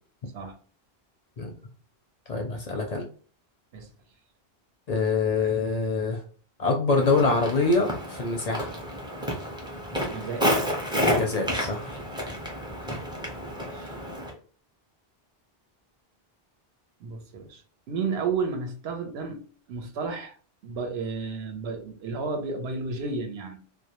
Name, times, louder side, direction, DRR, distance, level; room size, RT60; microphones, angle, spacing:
voice 1, 2.3-3.0 4.9-6.2 6.6-8.7 11.0-12.0, left 3 dB, 50° left, 2 dB, 0.5 m, -25 dB
Walk footsteps, 6.9-14.3, equal, 5° right, 0.5 m, -30 dB
voice 2, 10.1-10.6 13.5-14.0 17.0-17.6 17.9-20.4 20.6-23.6, right 4 dB, 90° right, 6 dB, 0.9 m, -32 dB
2.2 x 2.1 x 2.8 m, 0.41 s
omnidirectional pair, 1.0 m